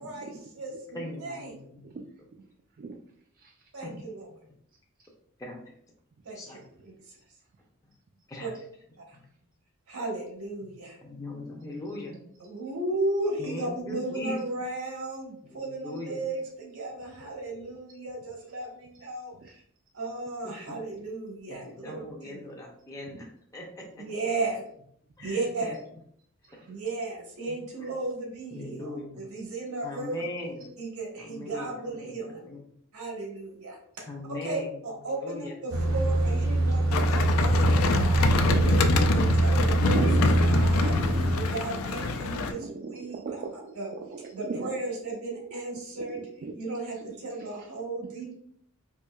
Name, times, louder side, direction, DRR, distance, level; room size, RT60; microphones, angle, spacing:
voice 1, 0.0-1.6 3.7-4.3 6.2-7.1 8.4-8.5 9.1-9.2 9.9-11.0 11.9-12.1 12.4-19.6 19.9-22.4 23.8-24.6 25.2-25.8 26.7-30.5 30.8-32.5 32.9-40.1 40.5-40.9 41.3-43.4 43.7-43.9 44.3-46.2 46.5-48.3, right 2 dB, 80° right, -1 dB, 1.2 m, -35 dB
voice 2, 0.9-1.9 3.8-4.0 5.4-5.6 6.3-6.6 8.3-8.5 11.0-12.1 13.4-14.4 15.5-16.2 21.5-23.3 23.5-24.0 25.2-25.4 28.5-29.2 29.8-30.7 31.2-32.6 34.1-34.8 35.1-35.5, left 1 dB, 15° left, -2 dB, 0.5 m, -39 dB
voice 3, 1.8-2.4 2.8-3.0 3.4-3.7 19.4-19.5 22.1-22.2 25.2-25.3 26.5-26.7 38.2-40.3 40.6-41.3 42.6-44.7 46.0-46.6 47.0-47.1 47.4-47.5, right 4 dB, 40° right, 1 dB, 0.3 m, -38 dB
sound 1, 35.7-41.4, right 1 dB, 65° right, 0.9 m, -23 dB
sound 2, 36.9-42.5, left 4 dB, 70° left, 0.4 m, -27 dB
4.3 x 2.7 x 2.2 m, 0.66 s
head